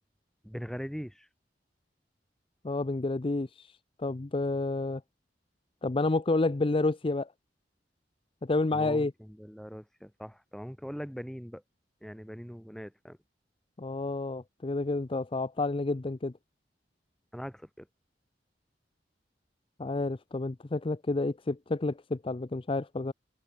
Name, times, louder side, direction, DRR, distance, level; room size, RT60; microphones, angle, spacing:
voice 1, 0.4-1.3 8.7-11.6 12.0-13.2 17.3-17.9, equal, 5° left, 4.2 m, -41 dB
voice 2, 2.6-3.7 4.0-5.0 5.8-7.3 8.4-9.1 13.8-16.3 19.8-23.1, left 2 dB, 30° left, 0.6 m, -30 dB
head